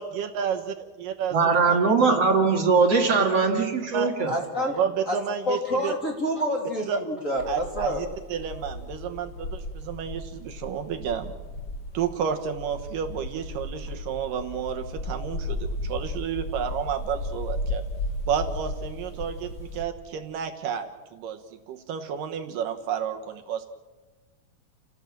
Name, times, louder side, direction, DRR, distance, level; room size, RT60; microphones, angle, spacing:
voice 1, 0.0-2.2 3.9-4.1 4.7-5.9 6.9-7.0 7.5-7.9 8.3-11.3 11.9-17.8 18.3-21.4 21.7-23.7, right 7 dB, 70° right, 6 dB, 2.6 m, -31 dB
voice 2, 1.3-4.3, right 4 dB, 45° right, 3 dB, 2.8 m, -21 dB
voice 3, 4.3-4.8 5.1-5.2 5.5-8.0, equal, 25° left, -1 dB, 2.7 m, -28 dB
sound 1, 7.4-19.8, left 1 dB, 40° left, 1.7 m, -35 dB
30.0 x 17.5 x 7.5 m, 1.3 s
omnidirectional pair, 4.2 m